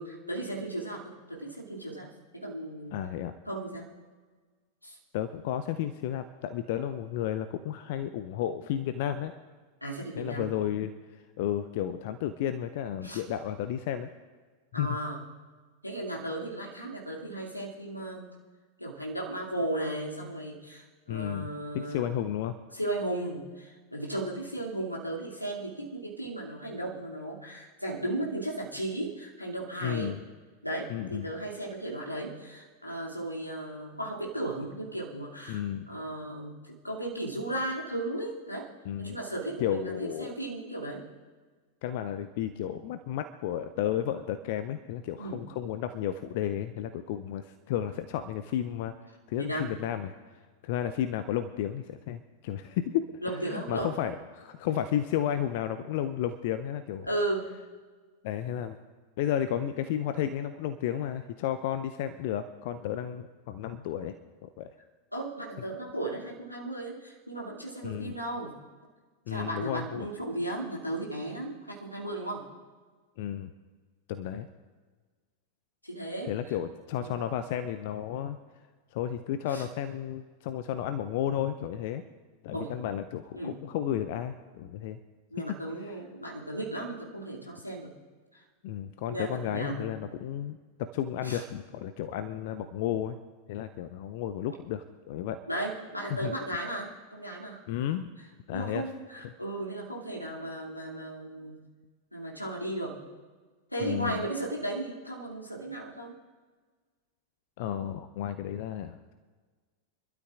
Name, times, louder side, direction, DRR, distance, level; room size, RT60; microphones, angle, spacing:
voice 1, 0.0-2.9 3.5-3.9 4.8-5.0 9.8-10.5 13.0-13.2 14.7-15.2 15.8-18.3 18.8-22.0 22.7-30.1 30.6-38.7 39.0-41.0 45.2-45.4 49.4-49.7 53.2-53.9 57.0-57.5 65.1-68.5 69.3-72.4 75.8-76.3 77.0-77.3 79.5-79.6 82.5-82.7 83.3-83.5 85.3-87.9 88.3-88.4 89.1-89.9 91.2-91.4 95.5-97.6 98.5-101.7 102.1-103.0 103.7-106.1, right 1 dB, 85° left, -3 dB, 2.5 m, -35 dB
voice 2, 2.9-3.3 5.1-9.3 10.2-14.1 14.8-15.0 21.1-21.5 21.7-22.6 29.8-30.2 30.9-31.3 35.5-35.9 38.8-39.2 39.6-40.3 41.8-48.9 49.3-50.1 50.6-57.1 58.2-58.8 59.2-64.2 64.4-64.7 67.8-68.2 69.3-70.1 73.2-73.5 74.1-74.5 76.3-78.4 78.9-82.0 82.4-85.0 85.8-85.9 88.6-93.2 93.5-95.4 96.2-96.3 97.7-98.1 98.5-98.9 99.2-99.3 103.8-104.2 107.6-109.1, left 10 dB, 50° left, 11 dB, 0.6 m, -32 dB
26.0 x 12.5 x 2.5 m, 1.4 s
figure-of-eight pair, 90°, 0 cm